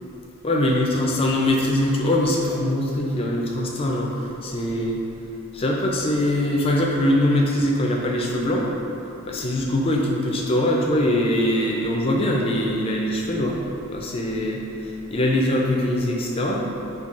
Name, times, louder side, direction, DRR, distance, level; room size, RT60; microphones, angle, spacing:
voice 1, 0.4-5.0 5.5-8.7 9.2-13.6 13.9-16.7, left 1 dB, 25° left, -1 dB, 0.3 m, -22 dB
5.2 x 2.3 x 2.4 m, 2.9 s
head